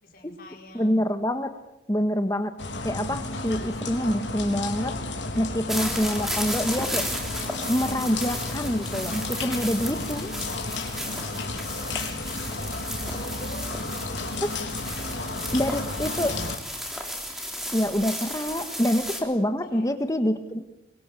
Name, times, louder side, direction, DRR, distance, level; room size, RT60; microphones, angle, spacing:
voice 1, 0.0-1.1 11.2-12.2 12.6-14.3 15.4-16.5 19.6-19.9, left 1 dB, 55° left, 2 dB, 4.8 m, -45 dB
voice 2, 0.7-1.5 1.9-2.5 2.8-4.9 5.4-7.0 7.7-10.3 15.5-16.3 17.7-20.6, equal, 20° left, 8 dB, 1.6 m, -26 dB
sound 1, 2.6-16.6, left 2 dB, 90° left, 3.5 m, -33 dB
sound 2, 5.7-19.2, equal, ahead, 3.6 m, -34 dB
23.5 x 23.5 x 8.5 m, 0.85 s
head